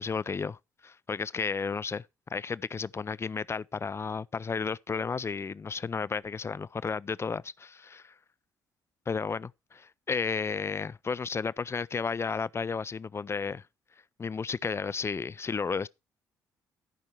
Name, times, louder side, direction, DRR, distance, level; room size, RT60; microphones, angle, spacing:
voice 1, 0.0-2.0 2.3-8.1 9.1-13.6 14.2-15.9, left 5 dB, 25° left, 0.4 m, -33 dB
13.5 x 5.5 x 4.6 m
figure-of-eight pair, 45°, 10 cm